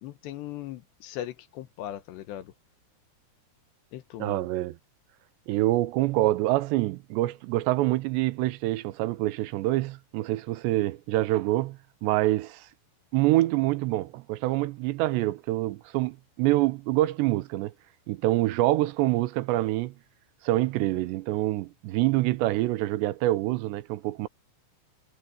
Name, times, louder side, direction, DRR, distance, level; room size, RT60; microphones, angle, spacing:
voice 1, 0.0-2.5 3.9-4.4, left 12 dB, 80° left, 3.3 m, -39 dB
voice 2, 4.2-4.8 5.5-12.7 13.1-17.7 18.1-19.9 20.4-24.3, right 17 dB, 85° right, 2.9 m, -26 dB
omnidirectional pair, 5.0 m